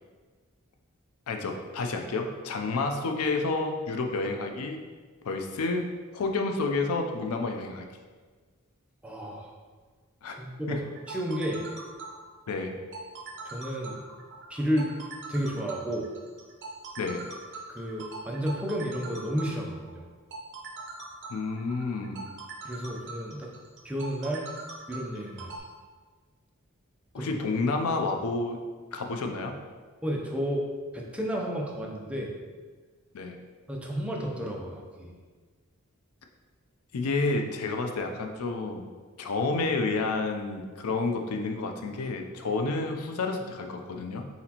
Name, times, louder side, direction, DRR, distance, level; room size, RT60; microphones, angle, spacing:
voice 1, 1.3-4.8 5.2-5.8 6.1-7.9 10.2-10.3 10.7-10.8 12.5-12.8 17.0-17.2 21.3-22.3 27.1-28.6 28.9-29.6 33.1-33.4 36.9-38.9 39.2-44.3, left 3 dB, 85° left, 4 dB, 0.5 m, -30 dB
voice 2, 9.0-9.5 10.3-11.6 13.4-14.0 14.5-14.9 15.3-16.1 17.7-20.0 22.6-23.5 23.8-24.5 24.9-25.5 27.1-27.3 30.0-30.7 30.9-32.3 33.7-35.1, equal, 5° right, -1 dB, 0.5 m, -32 dB
sound 1, 10.8-25.6, right 3 dB, 55° right, 0.7 m, -42 dB
4.1 x 4.0 x 2.8 m, 1.5 s
head